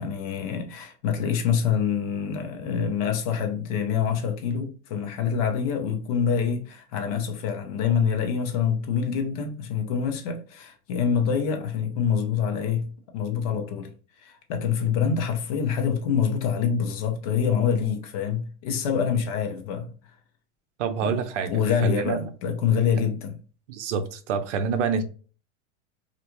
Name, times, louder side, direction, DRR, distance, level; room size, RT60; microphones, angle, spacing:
voice 1, 0.0-13.9 14.2-19.9 21.0-23.4, left 7 dB, 35° left, 0.4 m, -26 dB
voice 2, 20.8-21.5 21.8-22.2 23.7-25.0, right 6 dB, 80° right, 0.7 m, -26 dB
3.3 x 2.4 x 2.9 m
supercardioid pair, 170°, 35 cm